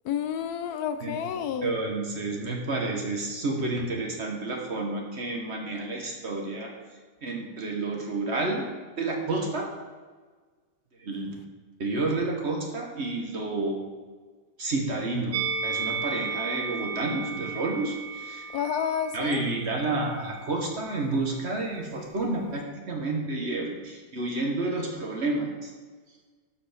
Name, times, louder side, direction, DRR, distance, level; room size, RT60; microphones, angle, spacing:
voice 1, 0.0-1.7 18.5-19.4, left 8 dB, 75° left, 10 dB, 1.1 m, -30 dB
voice 2, 1.6-6.7 7.2-8.6 9.0-9.7 11.0-11.4 11.8-13.8 14.6-15.4 15.6-18.5 19.1-25.7, right 2 dB, 45° right, 1 dB, 1.5 m, -30 dB
Musical instrument, 15.3-20.6 20.8-21.0, right 5 dB, 65° right, 1.0 m, -34 dB
12.5 x 5.1 x 5.1 m, 1.4 s
omnidirectional pair, 1.7 m